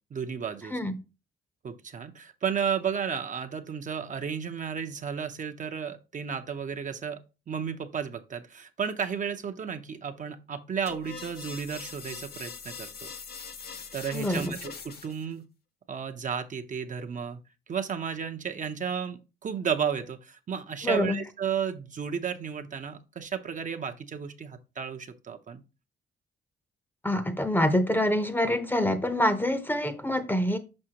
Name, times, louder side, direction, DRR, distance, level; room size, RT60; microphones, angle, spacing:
voice 1, 0.1-0.8 1.6-7.2 7.5-13.1 13.9-15.4 15.9-17.4 17.7-25.6, right 7 dB, 40° right, 7 dB, 0.6 m, -33 dB
sound 1, 10.9-15.3, left 5 dB, 50° left, 1.0 m, -42 dB
voice 2, 14.1-14.5 20.8-21.2 27.0-30.6, left 1 dB, 10° left, 12 dB, 0.7 m, -26 dB
6.3 x 5.4 x 2.8 m, 0.30 s
cardioid pair, 90°, 20 cm